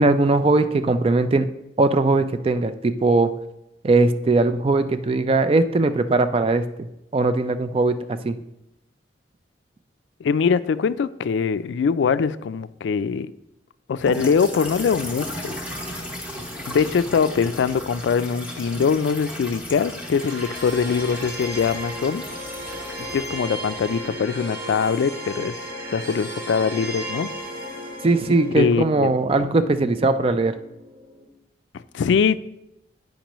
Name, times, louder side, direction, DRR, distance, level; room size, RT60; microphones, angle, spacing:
voice 1, 0.0-1.5 1.8-3.3 3.8-6.9 7.1-8.0 8.2-8.4 28.0-30.5, right 3 dB, 30° right, 0.4 m, -20 dB
voice 2, 10.2-13.3 13.9-15.6 16.7-22.2 23.0-25.5 25.9-27.3 28.6-29.2 31.7-32.4, left 6 dB, 75° left, 0.3 m, -22 dB
sound 1, 14.0-24.1, equal, 5° right, 1.0 m, -36 dB
sound 2, 20.2-31.3, equal, 50° right, 1.7 m, -35 dB
10.0 x 5.2 x 3.0 m
head